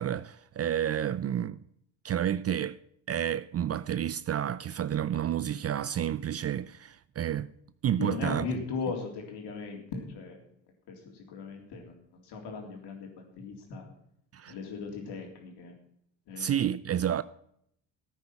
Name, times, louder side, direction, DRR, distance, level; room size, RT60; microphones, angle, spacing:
voice 1, 0.0-1.6 2.0-2.8 3.1-7.5 7.8-8.4 14.3-14.5 16.4-17.2, right 10 dB, 35° right, 0.5 m, -30 dB
voice 2, 8.0-10.4 10.9-13.8 14.5-15.7 16.3-16.7, left 4 dB, 65° left, 3.6 m, -38 dB
14.0 x 8.9 x 5.9 m
hypercardioid pair, 60°, 43 cm